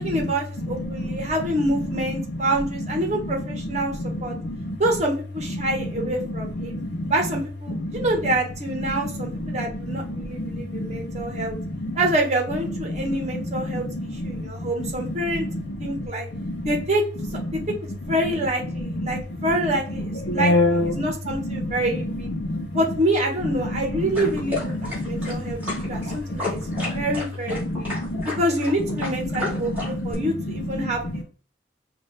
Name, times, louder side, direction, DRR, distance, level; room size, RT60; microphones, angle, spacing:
voice 1, 0.0-4.4 4.8-6.8 7.1-11.6 11.9-13.9 14.2-15.5 15.8-16.3 16.6-17.0 17.5-22.3 22.7-25.6 25.9-27.9 28.4-31.2, right 1 dB, 40° right, 1 dB, 1.2 m, -26 dB
voice 2, 0.8-1.2 3.8-4.8 6.0-6.1 6.6-7.1 7.7-8.1 9.1-11.5 11.8-12.0 12.9-13.0 13.6-14.9 15.3-16.1 16.4-16.7 17.5-17.6 18.8-19.2 20.3-21.1 21.4-21.7 22.4-22.8 23.6-23.7 24.7-26.2 26.5-27.1 27.6-28.3 29.3-30.3 30.7-30.9, left 1 dB, 70° left, 0 dB, 0.6 m, -28 dB
sound 1, 24.1-30.1, left 2 dB, 10° right, 2.3 m, -32 dB
5.3 x 2.5 x 3.2 m, 0.40 s
head